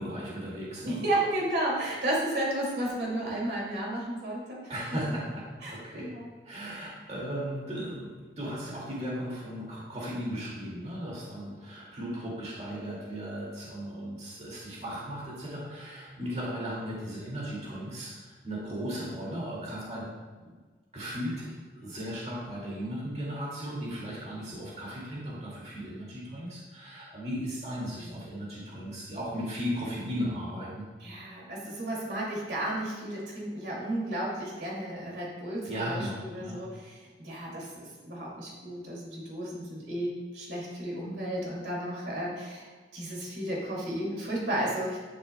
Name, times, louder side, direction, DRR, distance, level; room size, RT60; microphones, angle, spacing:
voice 1, 0.0-1.0 4.7-6.1 6.5-20.1 20.4-20.5 20.9-30.8 35.7-36.6, equal, 40° right, -6 dB, 2.1 m, -36 dB
voice 2, 0.8-4.7 5.6-6.3 27.9-28.2 31.0-42.7 42.9-45.0, right 1 dB, 70° right, -3 dB, 2.4 m, -33 dB
11.0 x 6.5 x 2.2 m, 1.4 s
head